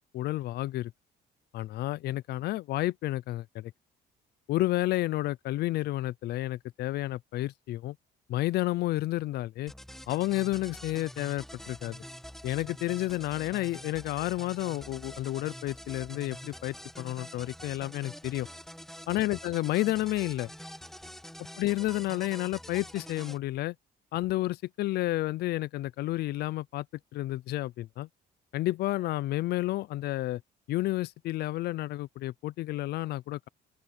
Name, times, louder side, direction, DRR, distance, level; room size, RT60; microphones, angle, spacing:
voice 1, 0.1-0.9 1.5-3.7 4.5-8.0 8.3-9.7 10.1-12.0 12.4-18.5 19.1-20.5 21.6-23.7 24.1-26.9 27.1-28.1 28.5-30.4 30.7-33.5, left 16 dB, 70° left, 0.6 m, -31 dB
sound 1, 9.7-23.4, equal, ahead, 1.6 m, -46 dB
open air
cardioid pair, 110°, 17 cm